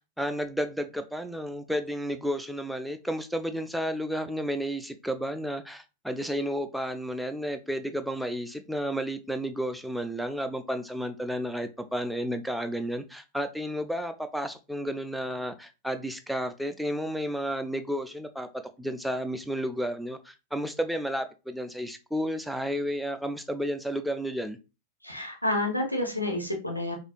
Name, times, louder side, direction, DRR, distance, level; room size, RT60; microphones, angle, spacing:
voice 1, 0.2-18.5 18.8-24.6, equal, ahead, 0.4 m, -32 dB
voice 2, 25.0-27.0, left 1 dB, 85° left, 0.9 m, -29 dB
4.9 x 2.6 x 2.3 m
figure-of-eight pair, 90°, 0 cm